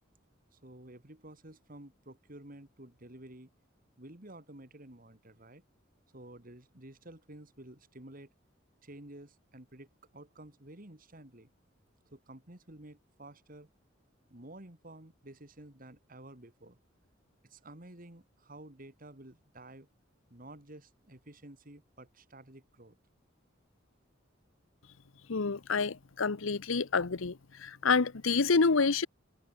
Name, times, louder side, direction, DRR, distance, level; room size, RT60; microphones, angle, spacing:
voice 1, 0.5-3.5 4.0-5.6 6.1-8.3 8.8-11.5 12.1-13.7 14.3-16.8 17.4-19.9 20.3-23.0, right 1 dB, 45° right, 3.0 m, -51 dB
voice 2, 25.3-29.1, left 4 dB, 80° left, 0.9 m, -28 dB
head